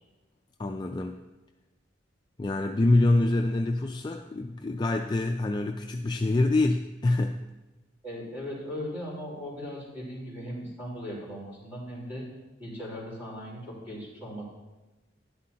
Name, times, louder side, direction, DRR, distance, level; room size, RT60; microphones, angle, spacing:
voice 1, 0.6-1.2 2.4-7.4, left 2 dB, 25° left, 3 dB, 0.3 m, -25 dB
voice 2, 8.0-12.2 12.6-14.4, equal, 10° right, -6 dB, 3.7 m, -38 dB
11.5 x 11.0 x 2.8 m, 1.1 s
head